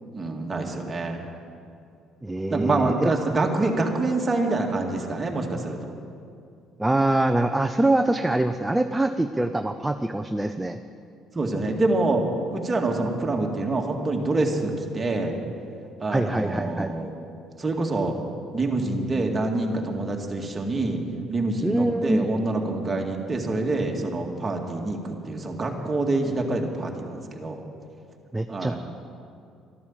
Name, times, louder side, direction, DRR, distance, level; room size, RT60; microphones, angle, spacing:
voice 1, 0.1-1.2 2.5-5.9 11.4-12.3 12.5-15.4 16.0-17.1 17.6-18.1 18.5-21.0 21.3-27.6 28.5-28.8, right 2 dB, 25° right, 1 dB, 2.1 m, -26 dB
voice 2, 2.2-3.1 6.8-10.8 16.1-16.9 21.6-22.3 28.3-28.7, right 1 dB, 10° right, 7 dB, 0.6 m, -24 dB
12.5 x 12.5 x 7.4 m, 2.5 s
cardioid pair, 100°, 0 cm